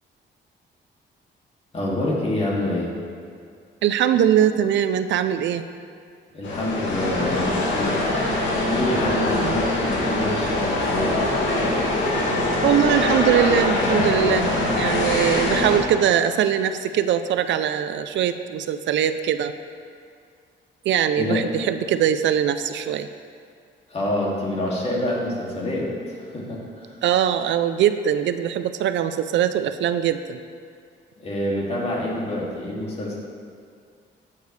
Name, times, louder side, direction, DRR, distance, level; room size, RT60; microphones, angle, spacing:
voice 1, 1.7-2.9 6.3-8.0 8.6-11.1 21.1-21.4 23.9-26.9 31.2-33.2, left 1 dB, 30° left, -4 dB, 2.5 m, -26 dB
voice 2, 3.8-5.6 9.3-9.6 12.6-19.5 20.9-23.1 27.0-30.4, right 9 dB, 75° right, 11 dB, 0.5 m, -22 dB
sound 1, 6.4-15.8, left 2 dB, 80° left, 2.1 m, -23 dB
13.0 x 8.3 x 3.3 m, 2.2 s
cardioid pair, 125°, 19 cm